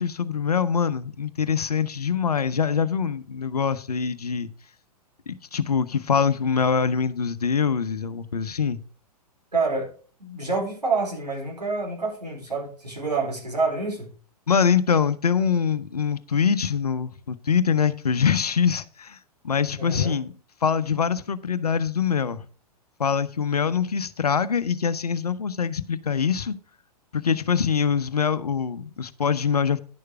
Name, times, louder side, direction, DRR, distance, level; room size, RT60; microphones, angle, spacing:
voice 1, 0.0-4.5 5.3-8.8 14.5-19.2 19.4-20.3 20.6-22.4 23.0-26.5 27.1-29.8, left 6 dB, 70° left, 0.8 m, -24 dB
voice 2, 9.5-9.9 10.2-14.1 19.8-20.2, right 4 dB, 85° right, 4.4 m, -27 dB
10.5 x 6.6 x 4.7 m
figure-of-eight pair, 105°, 20 cm